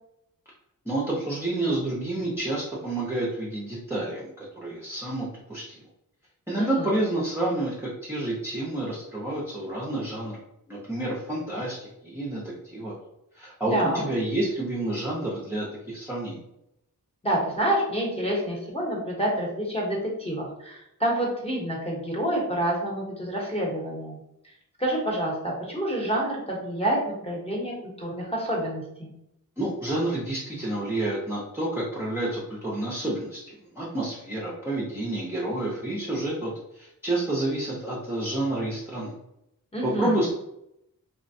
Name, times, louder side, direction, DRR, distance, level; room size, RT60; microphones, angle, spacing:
voice 1, 0.9-5.8 6.5-10.4 10.7-12.9 13.3-16.4 29.6-33.4 33.7-39.1 39.8-40.3, right 1 dB, 5° right, -7 dB, 0.6 m, -29 dB
voice 2, 6.6-6.9 13.7-14.0 17.2-24.2 24.8-29.1 39.7-40.2, right 1 dB, 15° left, -3 dB, 0.9 m, -28 dB
3.2 x 2.1 x 2.6 m, 0.81 s
wide cardioid pair, 100°, 35 cm